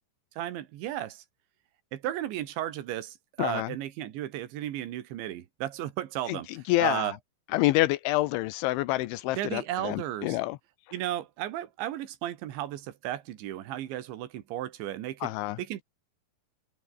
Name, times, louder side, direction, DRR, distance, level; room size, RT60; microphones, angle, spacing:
voice 1, 0.4-1.2 1.9-6.5 6.8-7.2 9.4-10.4 10.9-15.8, right 13 dB, 70° right, 3.9 m, -34 dB
voice 2, 3.4-3.7 6.3-7.1 7.5-10.6 15.2-15.6, left 18 dB, 80° left, 3.1 m, -27 dB
omnidirectional pair, 5.8 m